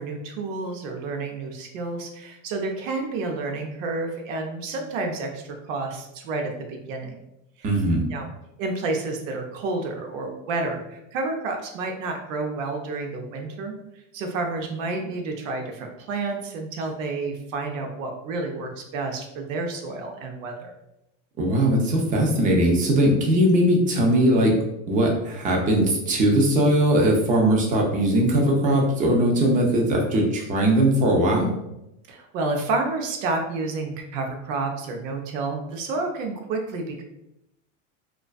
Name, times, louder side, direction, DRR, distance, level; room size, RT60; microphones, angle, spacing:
voice 1, 0.0-7.2 8.1-8.3 8.6-13.8 14.1-20.7 32.1-37.0, right 3 dB, 85° right, 3 dB, 0.6 m, -30 dB
voice 2, 7.6-8.0 21.4-24.5 24.9-31.5, right 1 dB, 20° right, 0 dB, 0.4 m, -20 dB
2.4 x 2.3 x 2.2 m, 0.88 s
supercardioid pair, 130°, 38 cm